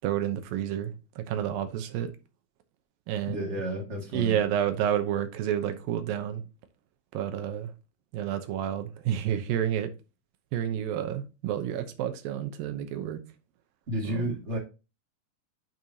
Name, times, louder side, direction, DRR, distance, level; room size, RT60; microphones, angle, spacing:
voice 1, 0.0-2.1 3.1-3.6 4.1-6.4 7.1-7.7 8.1-9.9 10.5-13.2 14.1-14.3, right 10 dB, 75° right, 2.6 m, -30 dB
voice 2, 3.3-4.4 13.9-14.6, right 1 dB, 25° right, 1.6 m, -31 dB
9.1 x 5.4 x 2.8 m
omnidirectional pair, 4.3 m